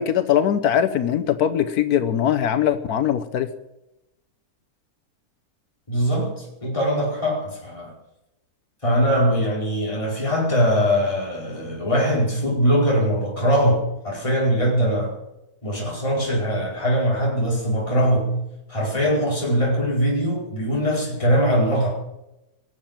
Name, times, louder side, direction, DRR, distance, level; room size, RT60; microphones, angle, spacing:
voice 1, 0.0-3.5, left 9 dB, 85° left, 9 dB, 1.3 m, -21 dB
voice 2, 5.9-7.9 8.8-15.1 15.6-18.4 18.7-21.9, equal, 20° left, -4 dB, 4.8 m, -21 dB
21.0 x 7.6 x 8.8 m, 0.92 s
omnidirectional pair, 1.6 m